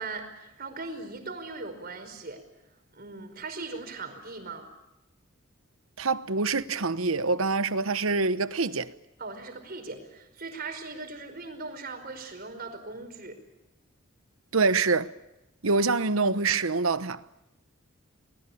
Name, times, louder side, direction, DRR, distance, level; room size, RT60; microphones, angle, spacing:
voice 1, 0.0-2.4 2.9-4.7 9.2-13.4, right 3 dB, 45° right, 5.1 m, -39 dB
voice 2, 6.0-8.9 14.5-15.1 15.6-17.2, right 4 dB, 80° right, 1.1 m, -25 dB
29.0 x 21.0 x 8.6 m
head